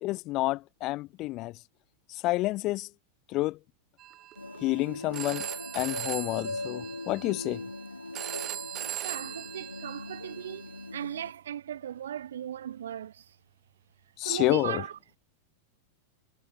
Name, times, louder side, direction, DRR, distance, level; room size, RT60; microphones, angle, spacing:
voice 1, 0.0-1.5 2.2-2.9 3.3-3.6 4.6-5.4 5.7-7.6 14.2-14.8, left 19 dB, 40° left, 0.5 m, -29 dB
Telephone, 4.0-10.9, right 14 dB, 35° right, 4.4 m, -40 dB
sound 1, 4.4-11.3, left 2 dB, 85° left, 3.2 m, -40 dB
voice 2, 9.0-13.3 14.2-15.2, right 10 dB, 65° right, 5.8 m, -37 dB
figure-of-eight pair, 90°, 0 cm